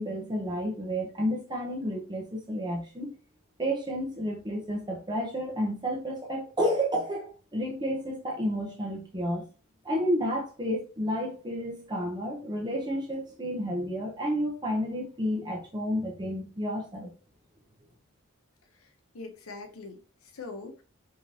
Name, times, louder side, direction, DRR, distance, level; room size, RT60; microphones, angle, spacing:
voice 1, 0.0-3.1 3.6-9.5 9.8-17.1, equal, 20° right, 0.8 m, -31 dB
voice 2, 19.1-20.8, left 3 dB, 85° left, 0.9 m, -42 dB
5.1 x 3.0 x 2.8 m
head